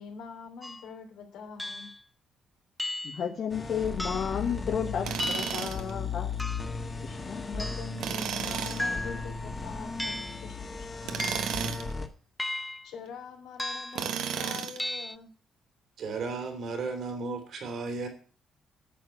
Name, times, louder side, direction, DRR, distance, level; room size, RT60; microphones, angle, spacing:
voice 1, 0.0-1.9 7.5-10.9 12.8-15.3, left 5 dB, 90° left, 1 dB, 3.3 m, -43 dB
sound 1, 0.6-0.9 1.6-2.0 2.8-3.3 4.0-4.4 5.2-5.7 6.4-6.8 7.6-8.0 8.8-9.3 10.0-10.4 11.2-11.6 12.4-12.9 13.6-14.1 14.8-15.2, left 1 dB, 10° left, 0.6 m, -35 dB
voice 2, 3.0-6.3 7.0-7.4, left 7 dB, 60° left, 4 dB, 1.2 m, -32 dB
sound 2, 3.5-12.1, left 4 dB, 35° left, 1.7 m, -36 dB
Tools, 5.0-5.9 8.0-8.9 11.0-11.9 13.9-14.9, right 8 dB, 80° right, 1.2 m, -33 dB
voice 3, 16.0-18.1, right 4 dB, 65° right, 5 dB, 3.1 m, -34 dB
9.2 x 6.7 x 8.5 m, 0.42 s
cardioid pair, 90°, 0 cm